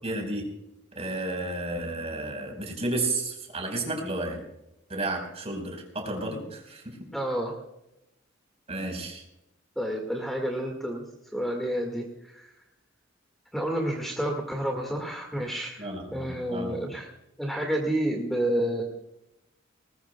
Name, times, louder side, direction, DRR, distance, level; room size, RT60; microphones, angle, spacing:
voice 1, 0.0-0.4 0.9-4.4 4.9-7.0 8.7-9.2 15.8-16.8, right 2 dB, 35° right, 2 dB, 4.8 m, -32 dB
voice 2, 7.1-7.5 9.8-11.0 11.3-12.5 13.5-17.1 17.4-18.8, right 1 dB, ahead, 1 dB, 2.0 m, -30 dB
20.5 x 20.0 x 2.3 m, 0.88 s
head